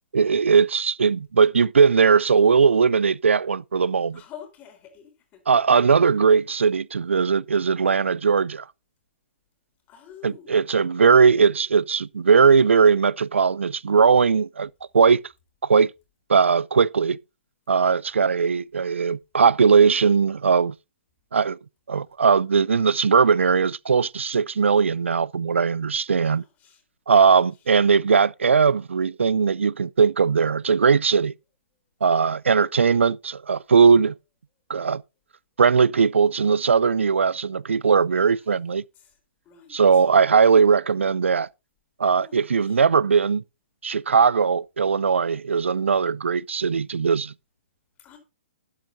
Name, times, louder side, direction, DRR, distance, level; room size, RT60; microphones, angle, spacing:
voice 1, 0.1-4.2 5.5-8.6 10.2-15.2 15.6-15.9 16.3-17.2 17.7-20.7 21.3-21.6 21.9-26.4 27.1-31.3 32.0-34.1 34.7-35.0 35.6-38.8 39.7-41.5 42.0-43.4 43.8-47.3, right 5 dB, 90° right, 0.4 m, -19 dB
voice 2, 4.1-5.4 9.9-10.5 26.3-26.8 27.1-27.4 38.2-38.5 39.0-39.2 39.4-40.0 42.1-42.8 48.0-48.2, left 9 dB, 25° left, 3.9 m, -47 dB
12.0 x 10.5 x 2.7 m
hypercardioid pair, 135°, 6 cm